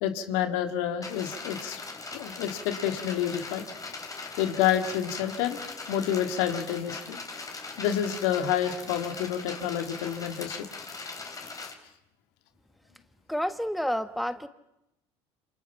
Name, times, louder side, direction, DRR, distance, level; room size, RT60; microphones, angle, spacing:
voice 1, 0.0-1.8 2.1-3.6 4.4-5.6 5.9-7.2 7.8-10.7, left 10 dB, 75° left, 7 dB, 2.3 m, -28 dB
sound 1, 1.0-11.7, left 3 dB, 25° left, 4.4 m, -40 dB
voice 2, 13.3-14.5, equal, ahead, 10 dB, 1.4 m, -29 dB
27.5 x 27.0 x 5.9 m, 0.88 s
hypercardioid pair, 70°, 14 cm